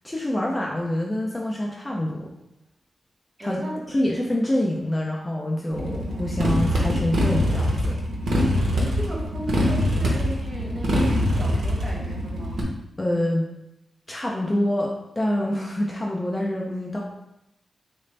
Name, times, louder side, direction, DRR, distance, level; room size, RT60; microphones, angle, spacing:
voice 1, 0.0-2.3 3.4-3.6 3.9-8.0 13.0-13.5 14.1-17.0, left 1 dB, 15° left, -2 dB, 0.4 m, -26 dB
voice 2, 3.4-3.8 8.9-12.6, right 1 dB, 25° right, -3 dB, 0.9 m, -36 dB
Motorcycle, 5.7-12.6, equal, 90° right, 0.8 m, -23 dB
4.1 x 2.5 x 3.2 m, 0.88 s
wide cardioid pair, 140°, 0 cm